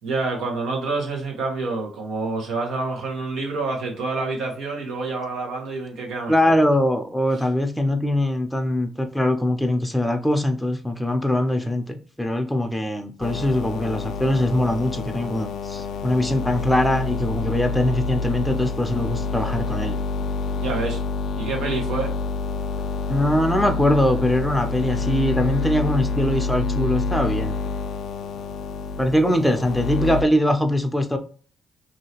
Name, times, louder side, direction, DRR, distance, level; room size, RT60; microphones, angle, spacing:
voice 1, 0.0-6.5 20.6-21.0 21.3-22.1, right 3 dB, 85° right, 0 dB, 1.3 m, -27 dB
voice 2, 6.3-20.0 23.1-27.6 29.0-31.2, left 1 dB, 5° left, 5 dB, 0.6 m, -22 dB
sound 1, 13.2-30.2, left 4 dB, 70° left, 0.3 m, -27 dB
2.8 x 2.7 x 2.9 m, 0.40 s
cardioid pair, 90°, 0 cm